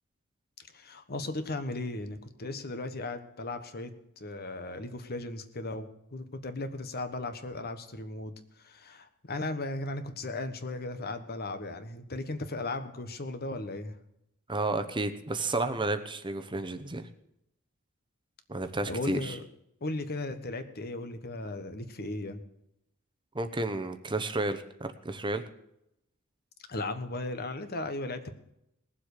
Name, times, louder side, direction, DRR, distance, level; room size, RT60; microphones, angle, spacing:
voice 1, 0.7-13.9 18.9-19.4 19.8-22.4 26.7-28.3, left 2 dB, 45° left, 9 dB, 1.2 m, -36 dB
voice 2, 14.5-17.1 18.5-19.4 23.3-25.4, right 2 dB, 20° right, 9 dB, 0.9 m, -32 dB
19.0 x 7.6 x 6.6 m, 0.80 s
head